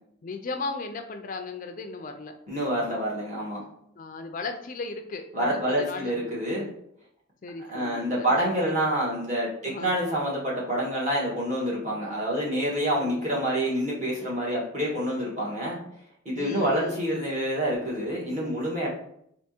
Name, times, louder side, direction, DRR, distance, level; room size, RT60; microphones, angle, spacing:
voice 1, 0.2-2.4 4.0-6.3 7.4-8.3 8.5-8.8 9.6-9.9 13.0-13.3 16.3-17.1, left 3 dB, 45° left, 6 dB, 0.4 m, -36 dB
voice 2, 2.5-3.6 5.3-6.7 7.7-15.8 16.2-18.9, equal, 40° right, -5 dB, 1.6 m, -27 dB
3.5 x 2.9 x 4.3 m, 0.70 s
head